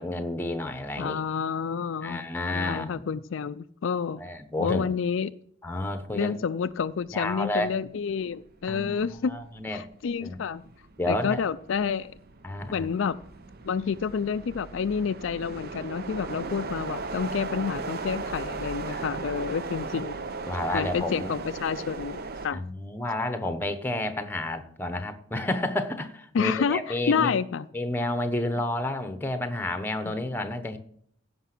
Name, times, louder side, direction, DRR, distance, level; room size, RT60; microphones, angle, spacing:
voice 1, 0.0-1.2 2.0-3.1 4.2-4.9 5.6-6.3 7.1-7.7 8.7-9.8 10.2-10.4 11.0-11.4 12.4-12.9 18.9-19.0 20.5-21.3 22.5-27.4 27.7-30.8, left 1 dB, 10° left, 1.0 m, -30 dB
voice 2, 1.0-2.2 2.5-4.2 4.6-5.3 6.1-9.3 9.7-10.6 11.1-12.1 12.7-13.2 13.6-20.2 20.7-22.6 26.3-27.6 30.0-30.2, left 6 dB, 60° left, 0.4 m, -29 dB
sound 1, 7.5-7.7 8.1-22.5, right 3 dB, 45° right, 0.7 m, -37 dB
16.0 x 5.9 x 6.0 m
head